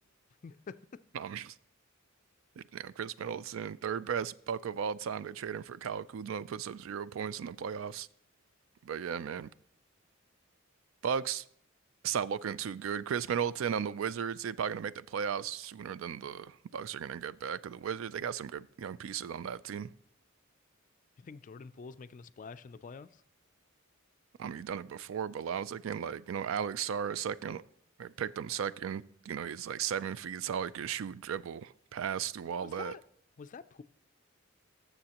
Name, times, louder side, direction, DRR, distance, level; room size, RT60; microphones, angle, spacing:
voice 1, 0.4-0.8 21.2-23.2 32.6-33.0 33.4-33.8, left 5 dB, 40° left, 0.3 m, -47 dB
voice 2, 1.1-1.6 2.6-8.1 8.8-9.5 11.0-11.4 12.0-19.9 24.4-27.6 28.0-32.9, right 7 dB, 75° right, 0.4 m, -36 dB
19.0 x 6.9 x 2.9 m
head